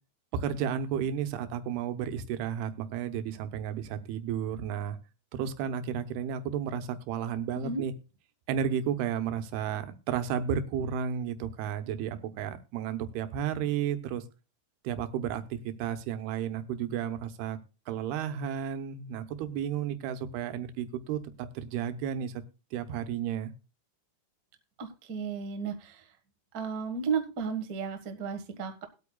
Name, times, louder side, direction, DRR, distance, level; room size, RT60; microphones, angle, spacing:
voice 1, 0.3-5.0 5.3-7.9 8.5-14.2 14.8-17.6 17.9-22.3 22.7-23.5, right 8 dB, 85° right, 10 dB, 2.9 m, -32 dB
voice 2, 24.8-26.1 26.5-28.8, right 5 dB, 65° right, 5 dB, 0.9 m, -34 dB
21.0 x 8.5 x 2.3 m, 0.33 s
omnidirectional pair, 4.5 m